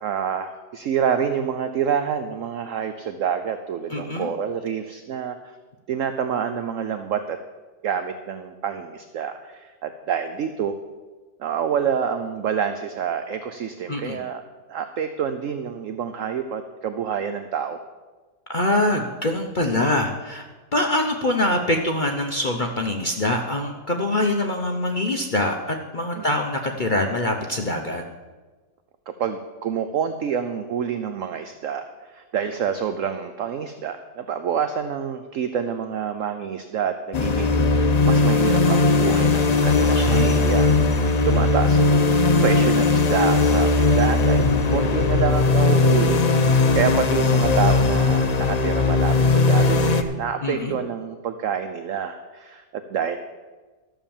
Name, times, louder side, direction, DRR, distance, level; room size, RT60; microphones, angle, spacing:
voice 1, 0.0-5.6 5.9-7.4 7.8-10.8 11.4-14.4 14.7-17.8 26.1-26.2 29.1-53.2, right 7 dB, 65° right, 9 dB, 0.8 m, -27 dB
voice 2, 3.9-4.3 13.9-14.2 18.5-20.4 20.7-28.0 39.6-40.4 50.4-50.8, left 1 dB, 40° left, 3 dB, 0.7 m, -24 dB
sound 1, 37.1-50.0, left 3 dB, 70° left, 0.3 m, -18 dB
13.0 x 7.2 x 7.1 m, 1.3 s
omnidirectional pair, 1.9 m